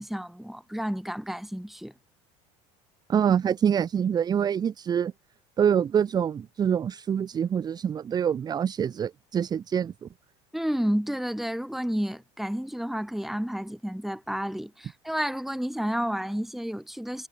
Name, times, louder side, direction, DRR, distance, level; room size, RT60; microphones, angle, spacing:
voice 1, 0.0-1.9 10.5-17.3, equal, ahead, 3.9 m, -31 dB
voice 2, 3.1-5.1 5.6-10.1, right 8 dB, 25° right, 0.5 m, -25 dB
supercardioid pair, 100°, 15 cm